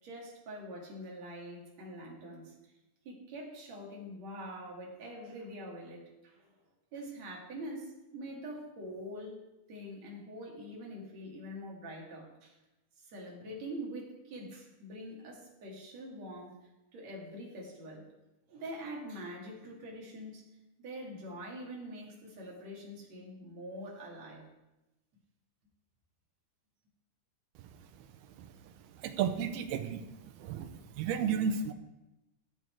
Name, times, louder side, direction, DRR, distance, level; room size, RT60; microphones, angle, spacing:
voice 1, 0.0-2.5 3.0-6.5 6.9-9.4 9.7-12.6 13.0-16.6 16.9-18.1 18.5-20.4 20.8-24.5, equal, 50° right, -3 dB, 3.2 m, -44 dB
voice 2, 28.4-28.7 29.0-31.7, right 7 dB, 85° right, 8 dB, 2.8 m, -34 dB
13.0 x 7.5 x 4.6 m, 0.97 s
omnidirectional pair, 4.4 m